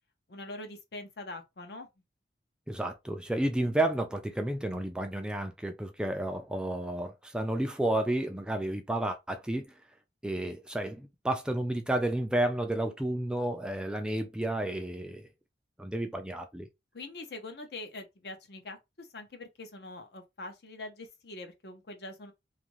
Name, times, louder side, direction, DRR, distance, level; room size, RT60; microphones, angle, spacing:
voice 1, 0.3-1.9 16.9-22.3, left 2 dB, 65° left, 0.7 m, -43 dB
voice 2, 2.7-9.7 10.2-15.3 15.8-16.7, right 1 dB, 5° right, 0.3 m, -31 dB
2.6 x 2.5 x 3.0 m
head